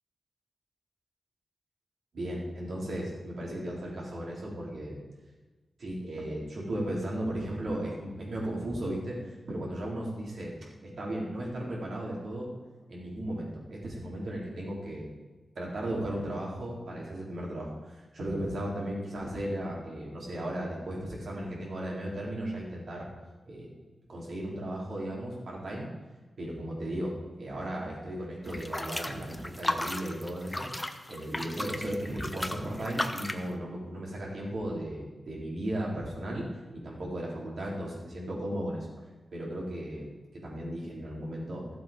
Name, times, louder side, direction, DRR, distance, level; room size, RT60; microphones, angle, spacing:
voice 1, 2.1-5.0 5.8-10.5 10.8-12.5 12.9-15.1 15.6-23.1 23.5-23.7 24.1-25.9 26.4-30.7 31.1-38.9 39.3-40.1 40.3-41.7, right 1 dB, 70° right, -4 dB, 3.7 m, -35 dB
sound 1, 28.5-33.5, left 1 dB, 15° left, 0.9 m, -35 dB
13.5 x 7.4 x 5.1 m, 1.3 s
wide cardioid pair, 80°, 0 cm